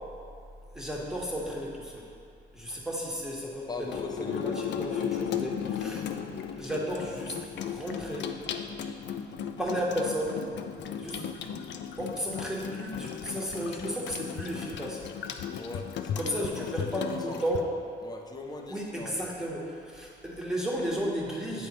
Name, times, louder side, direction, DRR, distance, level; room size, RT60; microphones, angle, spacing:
voice 1, 0.7-2.0 2.5-3.7 4.3-6.0 6.6-7.4 7.7-8.3 9.6-10.4 11.0-11.2 12.0-15.0 16.2-17.6 18.7-21.7, equal, 5° right, -3 dB, 1.3 m, -33 dB
voice 2, 3.7-4.6 15.5-17.4 18.0-19.4, left 3 dB, 20° left, 2 dB, 0.7 m, -40 dB
Water tap faucet / Sink (filling or washing), 3.8-17.6, left 8 dB, 65° left, 0.4 m, -36 dB
9.0 x 3.5 x 4.3 m, 2.4 s
cardioid pair, 90°, 20 cm